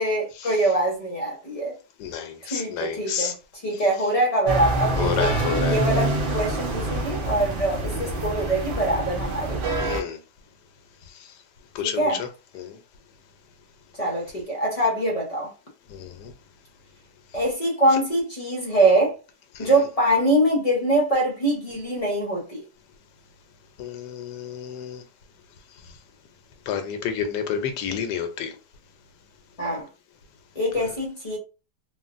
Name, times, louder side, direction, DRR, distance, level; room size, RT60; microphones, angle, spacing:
voice 1, 0.0-1.7 2.5-3.3 3.6-5.3 5.7-9.6 12.0-12.2 14.0-15.5 17.3-19.1 19.6-22.6 29.6-29.9 30.6-31.4, right 1 dB, 35° left, 0.5 m, -23 dB
voice 2, 2.0-3.3 3.7-3.8 4.9-5.8 7.9-8.2 9.8-10.2 11.7-12.3 12.5-12.8 15.9-16.3 19.5-19.7 23.8-25.0 26.7-28.5 30.8-30.9, left 8 dB, 90° left, 1.2 m, -30 dB
sound 1, 4.5-10.0, right 2 dB, 70° right, 0.5 m, -26 dB
3.1 x 2.4 x 2.4 m
omnidirectional pair, 1.8 m